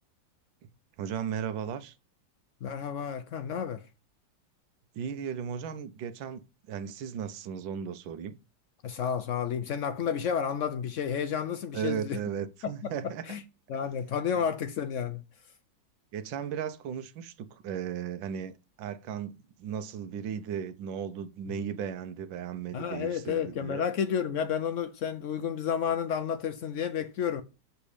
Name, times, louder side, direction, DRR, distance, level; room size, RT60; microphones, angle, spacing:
voice 1, 1.0-1.9 4.9-8.4 11.7-13.3 16.1-18.5 18.8-23.9, right 8 dB, 80° right, 1.5 m, -36 dB
voice 2, 2.6-3.8 8.8-12.2 12.6-12.9 13.3-13.4 13.7-15.2 21.5-21.6 22.7-27.4, left 7 dB, 85° left, 0.6 m, -31 dB
7.0 x 5.2 x 5.0 m
omnidirectional pair, 2.1 m